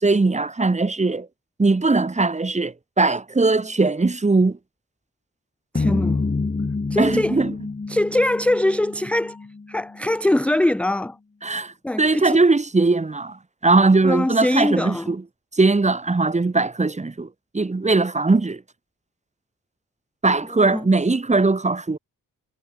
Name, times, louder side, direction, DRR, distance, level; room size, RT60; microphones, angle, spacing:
voice 1, 0.0-1.3 1.6-4.6 7.0-7.5 11.4-15.2 15.5-17.3 17.5-18.6 20.2-22.0, right 3 dB, 20° right, 1.2 m, -20 dB
voice 2, 5.7-6.2 6.9-7.4 7.9-9.4 9.7-11.2 11.8-12.4 14.0-15.1 20.7-20.9, left 1 dB, 5° left, 0.5 m, -22 dB
sound 1, 5.8-10.1, left 3 dB, 25° left, 2.1 m, -27 dB
wide cardioid pair, 150°, 35 cm